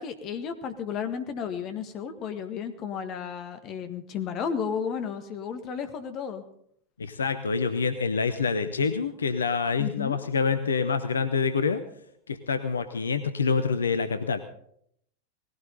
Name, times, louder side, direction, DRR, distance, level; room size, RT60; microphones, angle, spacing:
voice 1, 0.0-6.4 9.8-10.2, left 7 dB, 35° left, 8 dB, 1.7 m, -33 dB
voice 2, 7.0-11.8 12.3-14.4, left 5 dB, 70° left, 10 dB, 0.9 m, -26 dB
19.5 x 16.0 x 4.0 m, 0.69 s
figure-of-eight pair, 90°, 0 cm